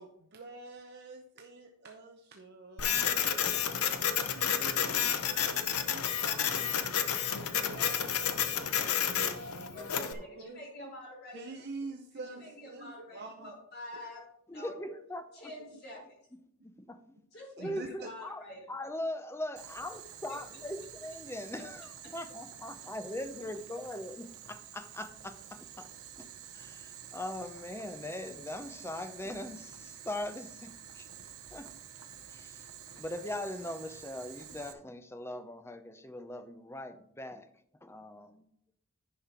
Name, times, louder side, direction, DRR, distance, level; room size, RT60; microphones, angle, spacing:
voice 1, 0.0-3.9 4.2-6.9 7.6-10.6 11.3-13.5 17.6-18.1, right 3 dB, 50° right, 3 dB, 0.7 m, -47 dB
Printer, 2.8-10.1, left 8 dB, 80° left, 0.9 m, -30 dB
voice 2, 9.6-11.4 12.4-14.2 14.5-14.7 15.3-16.2 17.3-18.7, left 1 dB, 45° left, -2 dB, 4.2 m, -47 dB
voice 3, 14.5-15.5 16.6-17.2 17.6-25.9 26.2-31.1 31.5-31.7 32.3-37.5 37.8-38.5, left 1 dB, 10° left, 9 dB, 0.6 m, -41 dB
Boiling, 19.6-34.7, right 9 dB, 75° right, 1.0 m, -49 dB
10.5 x 5.6 x 4.4 m, 0.70 s
head